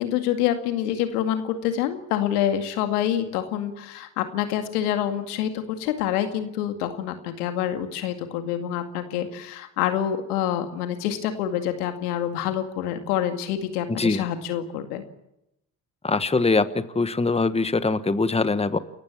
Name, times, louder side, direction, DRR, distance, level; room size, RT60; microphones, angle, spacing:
voice 1, 0.0-15.0, left 10 dB, 85° left, 7 dB, 2.3 m, -27 dB
voice 2, 13.9-14.2 16.0-18.8, left 3 dB, 15° left, 13 dB, 1.3 m, -23 dB
29.0 x 15.0 x 8.7 m, 0.85 s
hypercardioid pair, 60°, 44 cm